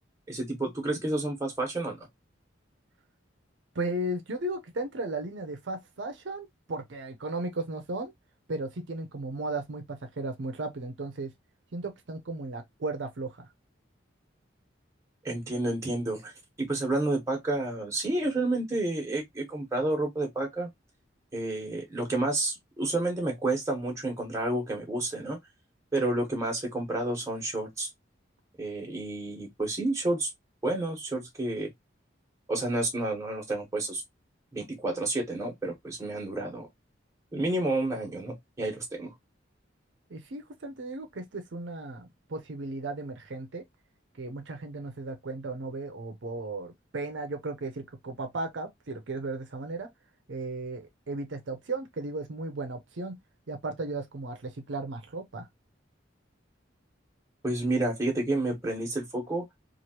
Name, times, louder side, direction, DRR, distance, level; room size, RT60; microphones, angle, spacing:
voice 1, 0.3-2.0 15.2-16.3 16.6-20.7 21.3-25.4 25.9-27.9 28.6-30.3 30.6-31.7 32.5-34.0 34.5-36.7 37.3-39.1 57.4-59.4, right 2 dB, 15° right, 1.2 m, -30 dB
voice 2, 3.7-8.1 8.5-11.3 11.7-13.5 40.1-43.6 44.2-49.9 50.3-53.2 53.5-55.5, right 2 dB, 70° right, 0.6 m, -35 dB
3.0 x 2.5 x 2.8 m
head